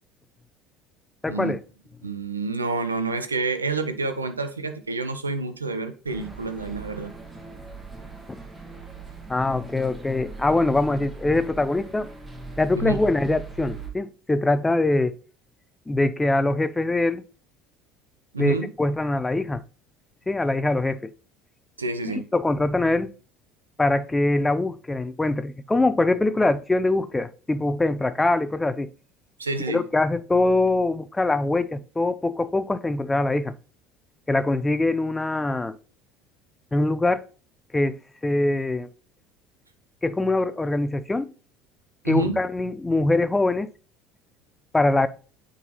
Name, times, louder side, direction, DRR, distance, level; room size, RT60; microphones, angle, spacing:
voice 1, 1.2-1.6 8.3-8.4 9.3-12.1 12.6-15.2 15.9-17.2 18.4-19.6 20.3-21.1 22.1-23.1 23.8-28.9 29.7-33.5 34.3-35.8 36.7-37.2 37.7-38.0 38.2-38.9 40.0-41.3 42.1-43.7 44.7-45.1, left 2 dB, 15° left, 0.5 m, -23 dB
voice 2, 2.0-7.1 12.7-13.0 18.3-18.7 21.8-22.3 29.4-29.8 42.0-42.4, right 3 dB, 85° right, 0.6 m, -28 dB
sound 1, 6.1-13.9, right 4 dB, 15° right, 1.6 m, -40 dB
9.0 x 3.9 x 2.9 m
figure-of-eight pair, 65°, 0 cm